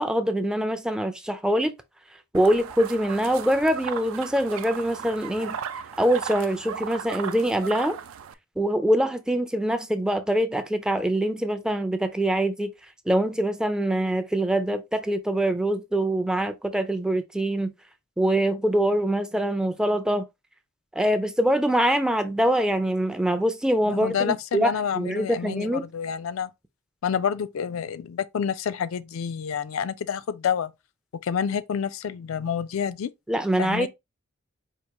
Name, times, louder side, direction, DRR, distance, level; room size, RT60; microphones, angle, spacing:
voice 1, 0.0-1.7 2.3-5.6 6.0-8.0 8.6-12.7 13.1-17.7 18.2-20.2 21.0-25.8 33.3-33.9, right 1 dB, 5° right, 0.3 m, -24 dB
sound 1, 2.3-8.3, right 7 dB, 85° right, 0.4 m, -36 dB
voice 2, 23.9-26.5 27.0-30.7 31.2-33.1 33.6-33.9, left 7 dB, 75° left, 0.4 m, -28 dB
4.6 x 2.6 x 2.8 m
head